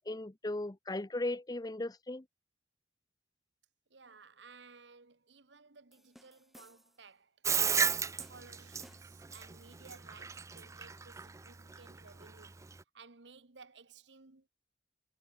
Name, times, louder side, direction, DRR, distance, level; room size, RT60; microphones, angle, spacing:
voice 1, 0.1-2.3, left 2 dB, 20° left, 0.8 m, -37 dB
voice 2, 3.9-7.4 7.6-12.6 12.9-14.5, right 4 dB, 70° right, 1.5 m, -57 dB
sound 1, 5.9-7.1 7.7-9.3, equal, ahead, 7.7 m, -61 dB
Bathtub (filling or washing), 7.4-12.8, right 6 dB, 15° right, 0.4 m, -33 dB
head